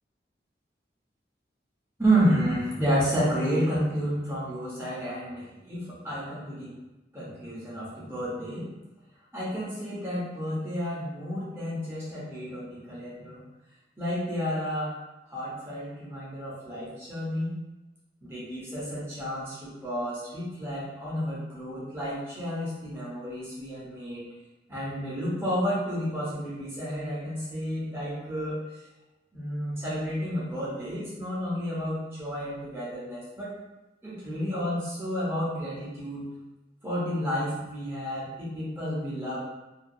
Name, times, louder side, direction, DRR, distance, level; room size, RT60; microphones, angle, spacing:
voice 1, 2.0-6.7 7.1-8.7 9.3-13.4 14.0-14.9 15.3-17.6 18.2-24.2 24.7-28.6 29.3-33.5 34.0-36.2 36.8-39.4, equal, 15° right, -9 dB, 0.8 m, -31 dB
2.5 x 2.4 x 2.5 m, 1.0 s
head